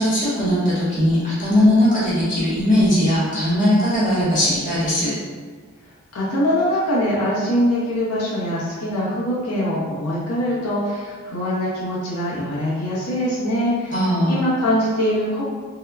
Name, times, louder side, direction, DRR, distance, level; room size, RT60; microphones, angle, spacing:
voice 1, 0.0-5.2 13.9-14.4, left 1 dB, 35° left, -9 dB, 0.9 m, -19 dB
voice 2, 6.1-15.4, equal, 90° left, -7 dB, 0.8 m, -23 dB
3.6 x 2.2 x 2.2 m, 1.5 s
head